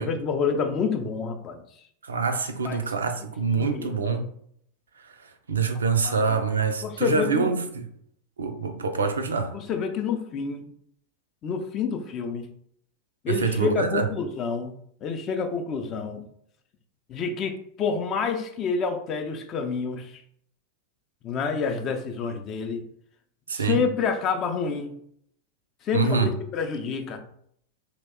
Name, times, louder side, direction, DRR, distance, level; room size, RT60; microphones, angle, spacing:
voice 1, 0.0-1.6 2.6-2.8 3.6-4.1 6.0-6.4 6.8-7.5 9.5-10.7 11.4-12.5 13.2-14.7 15.0-16.2 17.1-20.2 21.2-22.8 23.5-25.0 25.8-27.2, left 5 dB, 35° left, 0.4 m, -28 dB
voice 2, 2.0-4.3 5.0-7.9 8.4-9.6 13.3-14.1 23.5-23.8 25.9-26.3, right 5 dB, 70° right, 0.3 m, -25 dB
2.8 x 2.1 x 3.4 m
figure-of-eight pair, 85°, 0 cm